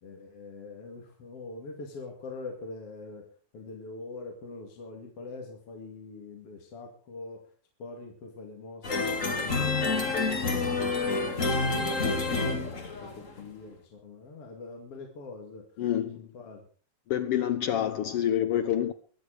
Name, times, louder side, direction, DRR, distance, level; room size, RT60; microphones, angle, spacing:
voice 1, 0.0-3.2 3.5-7.4 7.8-10.7 11.0-11.2 11.7-12.8 13.2-15.6 16.2-16.6, left 3 dB, 50° left, 3.1 m, -43 dB
sound 1, 8.8-13.4, left 3 dB, 30° left, 1.8 m, -28 dB
voice 2, 15.8-16.2 17.1-18.9, left 10 dB, 80° left, 1.3 m, -27 dB
22.5 x 7.9 x 4.9 m
omnidirectional pair, 3.5 m